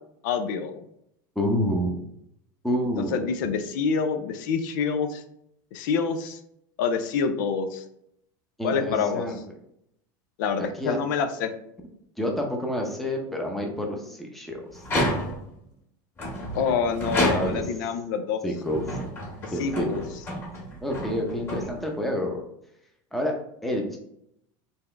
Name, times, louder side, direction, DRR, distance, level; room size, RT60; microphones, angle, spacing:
voice 1, 0.2-0.8 3.0-5.2 5.7-6.4 6.8-7.8 8.6-9.3 10.4-11.5 16.5-18.4 19.4-20.0, left 6 dB, 70° left, 8 dB, 0.5 m, -27 dB
voice 2, 1.4-1.9 2.6-3.2 8.6-9.4 10.6-11.0 12.2-14.6 17.3-17.6 18.4-19.0 19.5-20.0 20.8-22.4 23.1-23.3 23.6-24.0, equal, ahead, 0 dB, 0.7 m, -28 dB
sound 1, 14.8-15.6 16.2-17.8 18.5-22.1, left 1 dB, 20° left, 1.6 m, -30 dB
4.1 x 3.4 x 3.3 m, 0.74 s
supercardioid pair, 150°, 11 cm